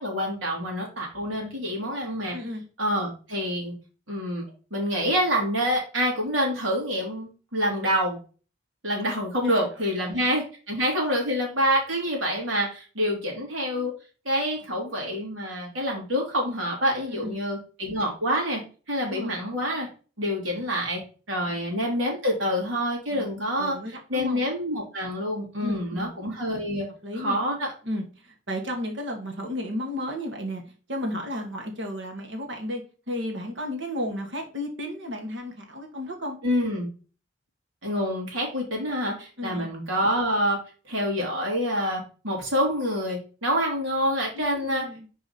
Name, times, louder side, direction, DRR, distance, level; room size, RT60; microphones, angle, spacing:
voice 1, 0.0-2.4 2.8-3.7 4.1-4.4 4.7-8.2 8.8-13.9 14.2-18.6 18.9-19.9 20.2-21.0 21.3-23.8 24.1-26.9 27.2-27.7 36.4-36.9 37.8-40.6 40.9-44.8, equal, 80° right, -1 dB, 3.1 m, -27 dB
voice 2, 2.3-2.6 9.4-9.6 10.0-10.2 17.1-17.4 19.0-19.4 23.1-23.3 23.6-24.4 25.6-26.1 27.0-27.4 27.8-30.6 30.9-36.4 39.4-39.7 44.3-45.1, left 1 dB, 65° right, 2 dB, 1.9 m, -33 dB
5.1 x 4.7 x 4.2 m, 0.36 s
head